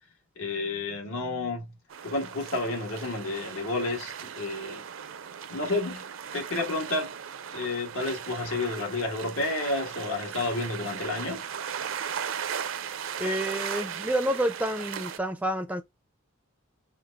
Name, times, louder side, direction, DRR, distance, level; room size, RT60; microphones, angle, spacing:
voice 1, 0.4-1.7 2.0-4.9 5.5-6.0 6.3-7.2 7.5-11.4, left 2 dB, 70° left, 1.5 m, -31 dB
sound 1, 1.9-15.2, right 8 dB, 65° right, 0.5 m, -37 dB
voice 2, 13.2-15.8, right 1 dB, 5° right, 0.4 m, -29 dB
4.9 x 2.4 x 3.5 m
head